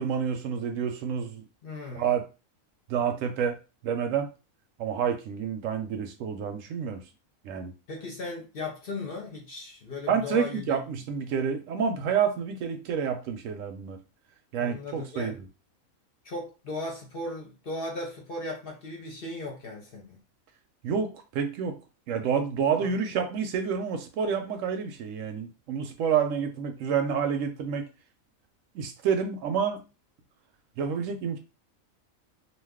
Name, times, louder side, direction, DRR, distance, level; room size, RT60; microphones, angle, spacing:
voice 1, 0.0-1.5 1.9-2.3 2.9-3.6 3.8-4.3 4.8-7.0 7.4-7.7 10.1-14.0 14.5-15.4 20.8-21.8 22.1-27.8 28.7-29.8 30.8-31.4, right 7 dB, 75° right, 0.9 m, -28 dB
voice 2, 1.6-2.1 7.9-11.0 14.6-15.3 16.2-20.2 22.8-23.0, left 2 dB, 50° left, 0.7 m, -37 dB
2.4 x 2.3 x 3.5 m
omnidirectional pair, 1.4 m